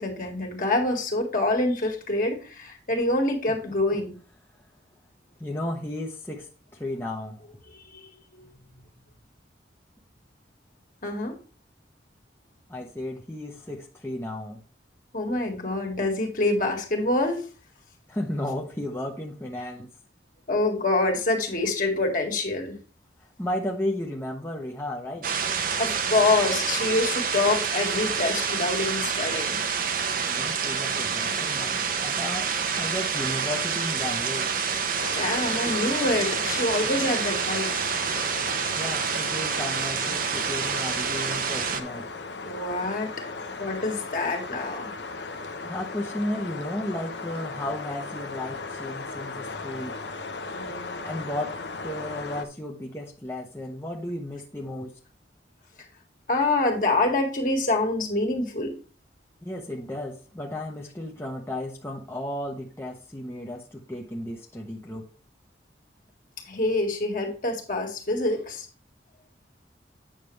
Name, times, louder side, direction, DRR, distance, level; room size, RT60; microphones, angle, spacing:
voice 1, 0.0-4.1 7.8-8.5 11.0-11.4 15.1-17.4 20.5-22.8 25.8-29.6 35.1-37.8 42.5-43.1 43.6-44.9 50.5-51.1 56.3-58.7 66.5-68.7, left 2 dB, 50° left, 2 dB, 1.8 m, -26 dB
voice 2, 5.4-7.4 12.7-14.6 18.1-19.9 23.4-25.3 30.2-32.5 32.7-34.5 38.7-42.1 45.6-50.0 51.0-51.6 51.8-54.9 59.4-65.1, left 1 dB, 15° left, -1 dB, 0.8 m, -34 dB
sound 1, 25.2-41.8, right 6 dB, 50° right, 0.9 m, -28 dB
sound 2, 34.9-52.4, left 3 dB, 75° left, 0.9 m, -37 dB
8.8 x 6.6 x 3.2 m, 0.37 s
head